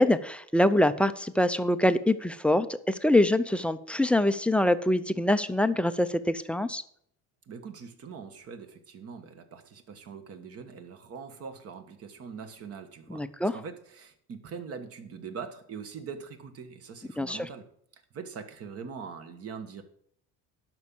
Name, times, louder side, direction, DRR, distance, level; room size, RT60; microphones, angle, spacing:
voice 1, 0.0-6.8 13.1-13.5 17.2-17.5, left 1 dB, 5° left, 11 dB, 0.4 m, -24 dB
voice 2, 7.5-17.7 17.9-19.8, right 6 dB, 45° right, 9 dB, 1.4 m, -42 dB
11.0 x 6.2 x 7.0 m, 0.67 s
cardioid pair, 135°, 33 cm